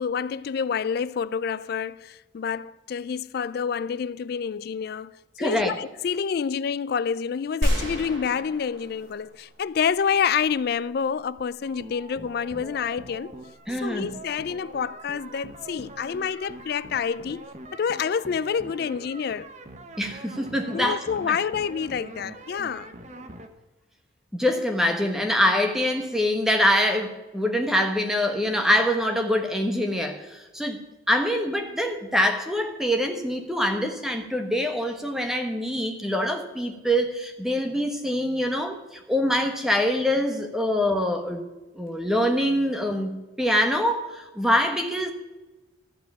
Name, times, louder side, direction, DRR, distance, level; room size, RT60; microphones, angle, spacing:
voice 1, 0.0-5.1 5.4-13.3 13.7-19.5 20.7-22.9, left 6 dB, 50° left, 0.3 m, -28 dB
voice 2, 5.4-5.7 13.7-14.1 20.0-21.0 21.3-21.4 24.3-30.8 31.1-41.4 41.7-45.1, equal, ahead, 1.2 m, -24 dB
sound 1, 7.6-9.9, equal, 80° right, 4.1 m, -29 dB
sound 2, 11.6-23.5, right 2 dB, 35° right, 0.9 m, -43 dB
14.0 x 4.9 x 9.2 m
head